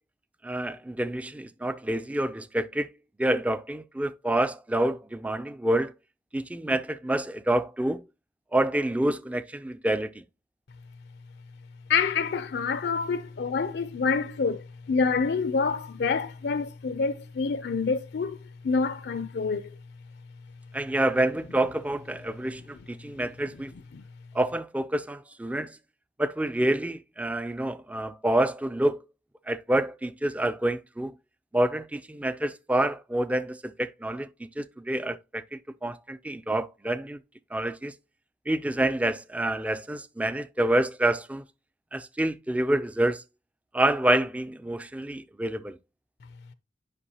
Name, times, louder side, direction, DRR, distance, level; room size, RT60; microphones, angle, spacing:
voice 1, 0.4-2.9 3.2-5.9 6.3-8.0 8.5-10.1 20.7-23.7 24.3-25.7 26.2-29.0 29.5-31.1 31.5-37.2 37.5-37.9 38.5-41.4 41.9-43.2 43.7-45.8, right 1 dB, 10° right, 0.3 m, -27 dB
voice 2, 11.9-18.4 18.6-19.7 23.2-23.3 23.9-24.0, left 5 dB, 60° left, 0.4 m, -27 dB
9.8 x 5.3 x 2.8 m
head